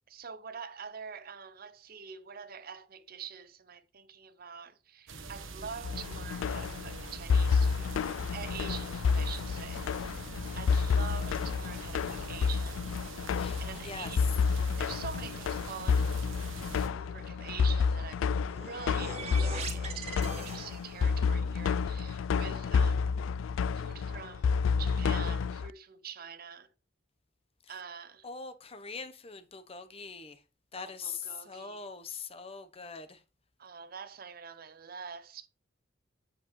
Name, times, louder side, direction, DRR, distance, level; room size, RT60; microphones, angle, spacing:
voice 1, 0.1-8.0 8.3-10.1 10.5-12.8 13.6-14.3 14.7-16.2 16.8-23.1 23.7-26.7 27.7-28.3 30.7-32.2 33.6-35.5, right 6 dB, 50° right, 0.7 m, -45 dB
sound 1, 5.1-16.9, right 3 dB, 90° right, 1.3 m, -44 dB
sound 2, 5.8-25.7, left 5 dB, 80° left, 0.3 m, -30 dB
voice 2, 13.3-14.1 27.7-27.8 28.2-30.4 30.7-33.2, left 5 dB, 30° left, 0.9 m, -42 dB
sound 3, 18.1-21.2, right 4 dB, 30° right, 1.7 m, -42 dB
8.4 x 7.7 x 3.2 m
head